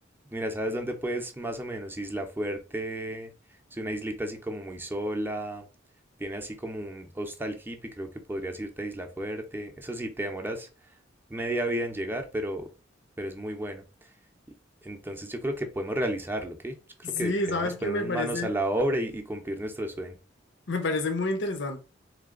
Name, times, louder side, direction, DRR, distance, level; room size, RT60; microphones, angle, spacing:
voice 1, 0.3-3.3 3.7-5.7 6.2-10.7 11.3-12.7 13.2-13.8 14.8-16.7 17.0-20.2, right 1 dB, 10° right, 0.6 m, -32 dB
voice 2, 17.0-18.5 20.7-21.8, left 2 dB, 65° left, 0.8 m, -29 dB
3.8 x 3.3 x 3.7 m
head